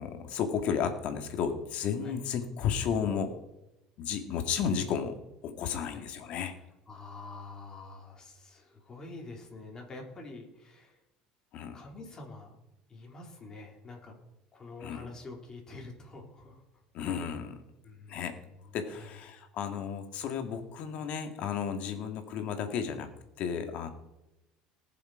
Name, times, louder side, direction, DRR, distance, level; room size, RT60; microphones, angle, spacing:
voice 1, 0.0-3.4 4.0-6.6 11.5-11.8 14.8-15.1 16.9-17.6 18.1-18.4 18.7-23.1 23.4-23.9, left 7 dB, 55° left, 7 dB, 2.1 m, -33 dB
voice 2, 6.9-11.0 11.7-12.6 12.9-14.1 14.5-16.8 17.8-19.1, left 3 dB, 25° left, 1 dB, 3.9 m, -47 dB
19.0 x 7.2 x 5.1 m, 0.93 s
supercardioid pair, 115°, 2 cm